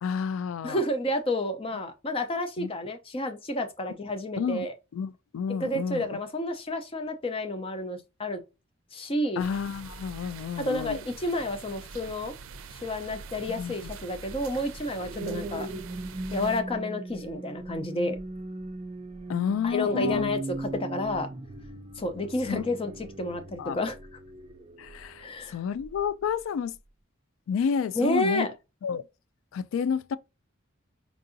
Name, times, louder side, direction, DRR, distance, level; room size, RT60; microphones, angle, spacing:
voice 1, 0.0-0.8 2.6-2.7 4.4-4.7 4.9-6.1 9.4-11.0 13.5-13.7 15.2-15.6 19.3-20.3 22.5-22.6 23.6-23.8 24.8-26.7 27.5-28.5 28.8-29.0 29.5-30.2, left 7 dB, 75° left, 0.3 m, -30 dB
voice 2, 0.6-4.7 5.6-8.4 8.9-9.4 10.6-12.3 12.7-15.7 16.3-18.2 19.6-21.3 22.0-22.9 23.2-24.0 25.2-25.6 27.9-28.5, left 1 dB, 30° left, 0.6 m, -30 dB
sound 1, 9.4-16.6, right 4 dB, 85° right, 0.4 m, -44 dB
sound 2, 14.7-25.2 25.8-26.1, right 2 dB, 30° right, 0.5 m, -38 dB
4.6 x 2.6 x 2.6 m
head